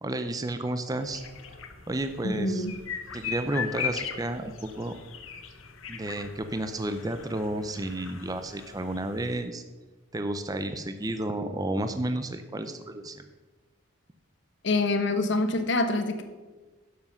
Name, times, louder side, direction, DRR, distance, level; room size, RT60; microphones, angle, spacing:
voice 1, 0.0-1.2 1.9-2.7 3.1-4.9 5.9-9.6 10.1-13.2, right 1 dB, 20° right, 8 dB, 0.5 m, -31 dB
sound 1, 1.0-9.4, left 7 dB, 80° left, 1.0 m, -39 dB
voice 2, 2.2-2.7 14.6-16.2, left 2 dB, 60° left, 8 dB, 1.0 m, -26 dB
11.0 x 7.2 x 5.6 m, 1.3 s
head